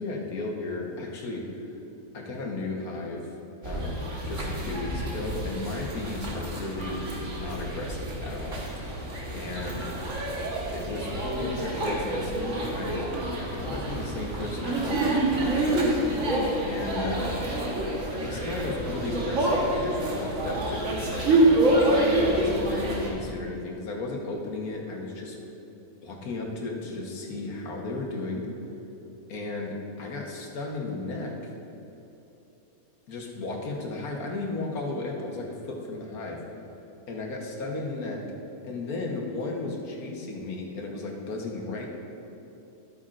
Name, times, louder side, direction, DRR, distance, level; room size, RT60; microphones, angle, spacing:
voice 1, 0.0-1.7 2.1-3.3 3.6-7.0 7.4-8.7 9.3-9.9 10.7-13.1 13.4-15.9 16.7-17.4 18.1-21.4 21.9-25.4 26.0-28.5 29.3-31.5 33.1-36.4 37.1-38.2 38.6-41.9, left 2 dB, 80° left, -1 dB, 1.7 m, -34 dB
sound 1, 3.6-23.1, right 1 dB, 60° right, 1.7 m, -27 dB
13.5 x 8.5 x 2.5 m, 2.9 s
omnidirectional pair, 1.5 m